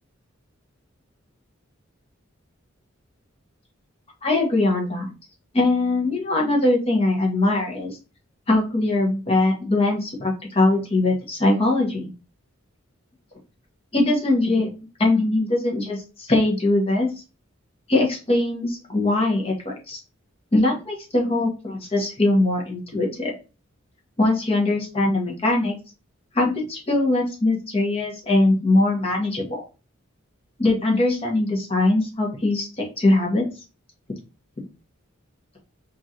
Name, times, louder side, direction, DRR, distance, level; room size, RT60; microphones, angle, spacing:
voice 1, 4.2-5.1 5.5-8.0 8.5-12.1 13.9-14.7 15.0-17.1 17.9-20.0 20.5-23.3 24.2-25.7 26.3-29.7 30.6-33.5, left 2 dB, 30° left, 0 dB, 0.9 m, -21 dB
3.0 x 2.5 x 2.7 m, 0.31 s
head